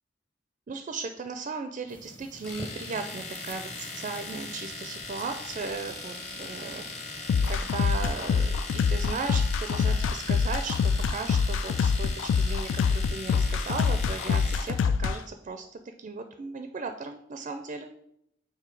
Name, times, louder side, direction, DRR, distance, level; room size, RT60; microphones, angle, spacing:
voice 1, 0.7-7.2 7.5-8.6 8.9-17.9, right 4 dB, 40° right, 7 dB, 0.4 m, -36 dB
sound 1, 1.9-7.6, equal, 10° left, 0.6 m, -46 dB
Domestic sounds home sounds, 2.4-14.8, left 3 dB, 35° left, 1.4 m, -40 dB
sound 2, 7.3-15.1, left 5 dB, 80° left, 0.3 m, -25 dB
6.9 x 3.1 x 4.6 m, 0.80 s
head